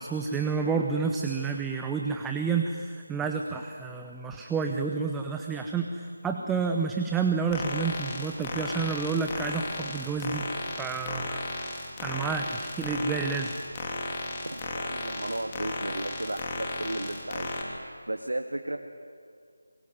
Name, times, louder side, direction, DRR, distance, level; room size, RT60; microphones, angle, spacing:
voice 1, 0.0-10.5 10.8-13.5, right 5 dB, 5° right, 3 dB, 0.9 m, -30 dB
sound 1, 7.5-17.6, left 2 dB, 20° left, 3.1 m, -35 dB
voice 2, 14.4-18.8, right 1 dB, 90° right, 5 dB, 1.7 m, -35 dB
25.0 x 22.0 x 9.4 m, 2.2 s
figure-of-eight pair, 165°, 0 cm